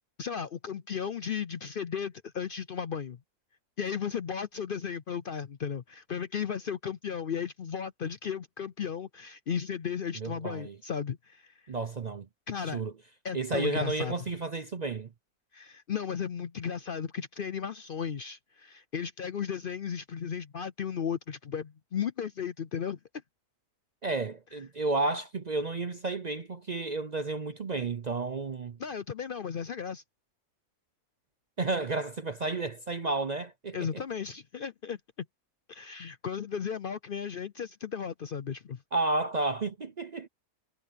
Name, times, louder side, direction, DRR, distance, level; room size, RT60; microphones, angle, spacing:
voice 1, 0.2-3.2 3.8-11.5 12.5-12.8 13.2-14.1 15.5-23.0 28.8-30.0 33.7-35.3 35.7-38.8, left 7 dB, 60° left, 0.5 m, -35 dB
voice 2, 10.2-10.8 11.7-12.3 12.6-12.9 13.3-15.1 24.0-28.8 31.6-34.0 38.9-40.3, right 3 dB, 50° right, 0.5 m, -32 dB
omnidirectional pair, 1.6 m